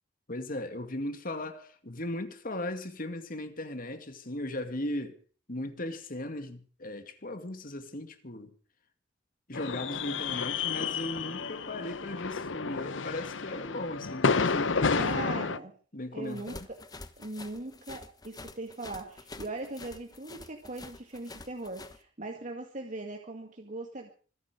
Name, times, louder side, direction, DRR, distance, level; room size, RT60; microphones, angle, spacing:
voice 1, 0.3-5.2 5.5-8.5 9.5-15.6 15.9-16.7, left 1 dB, 50° left, 2.3 m, -37 dB
sound 1, 9.5-15.6, left 4 dB, 85° left, 0.9 m, -30 dB
voice 2, 15.0-15.7 16.1-16.8 17.2-24.1, right 2 dB, 40° right, 2.1 m, -40 dB
sound 2, 16.3-22.0, left 2 dB, 20° left, 1.3 m, -47 dB
25.5 x 11.0 x 5.1 m
head